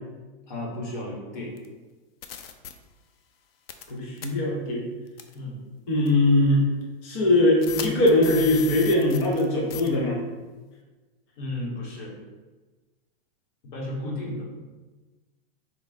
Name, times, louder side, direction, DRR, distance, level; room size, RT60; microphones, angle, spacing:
voice 1, 0.5-1.5 5.3-5.6 11.4-12.1 13.6-14.5, left 1 dB, 50° left, -4 dB, 1.3 m, -33 dB
sound 1, 1.6-1.7 2.2-2.7 3.7-3.9 4.2-4.3 5.2-5.3 6.1-6.2 7.6-9.4 9.7-9.9, left 10 dB, 70° left, 0.5 m, -35 dB
voice 2, 3.9-4.8 5.9-6.7 7.0-10.2, left 1 dB, 15° left, -3 dB, 0.3 m, -21 dB
4.4 x 2.0 x 4.0 m, 1.3 s
supercardioid pair, 160°, 30 cm